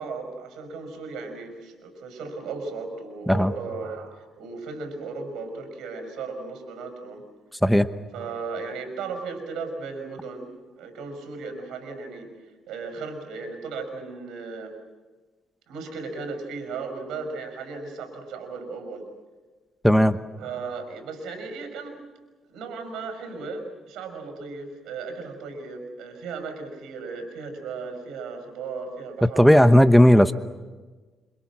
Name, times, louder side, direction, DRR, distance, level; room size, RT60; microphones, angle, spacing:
voice 1, 0.0-7.2 8.1-10.5 10.8-12.3 12.7-14.7 15.7-19.0 20.4-21.9 22.5-29.5, right 4 dB, 85° right, 6 dB, 6.0 m, -36 dB
voice 2, 19.8-20.2 29.4-30.3, equal, ahead, 11 dB, 1.0 m, -15 dB
27.0 x 26.0 x 6.2 m, 1.3 s
cardioid pair, 90°, 0 cm